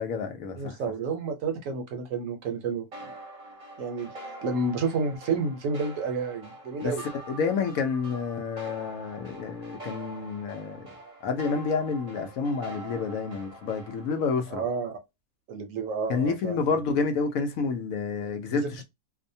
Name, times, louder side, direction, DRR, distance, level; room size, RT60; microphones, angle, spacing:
voice 1, 0.0-0.8 6.8-6.9 7.3-10.9 11.2-14.6 16.1-18.8, left 5 dB, 70° left, 0.9 m, -29 dB
voice 2, 0.6-3.1 3.8-4.1 4.4-7.0 14.5-15.0 15.5-16.6 18.5-18.8, right 4 dB, 65° right, 0.9 m, -30 dB
sound 1, 2.9-14.2, right 1 dB, 35° right, 0.7 m, -44 dB
2.7 x 2.1 x 2.6 m
omnidirectional pair, 1.6 m